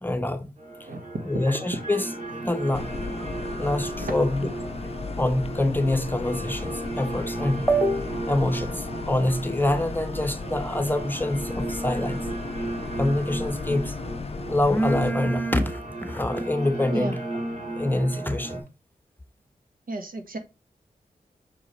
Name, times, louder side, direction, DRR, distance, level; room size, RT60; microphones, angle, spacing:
voice 1, 0.0-0.5 1.2-2.1 2.4-2.9 3.6-4.5 5.2-12.2 13.0-13.9 14.5-17.2 17.8-18.6, left 1 dB, 15° left, 1.0 m, -25 dB
sound 1, 0.6-18.6, right 2 dB, 50° right, 3.3 m, -35 dB
sound 2, 2.7-15.1, left 4 dB, 40° left, 0.5 m, -36 dB
voice 2, 19.9-20.4, right 2 dB, 70° right, 1.4 m, -32 dB
6.0 x 4.8 x 4.0 m
wide cardioid pair, 75°, 15 cm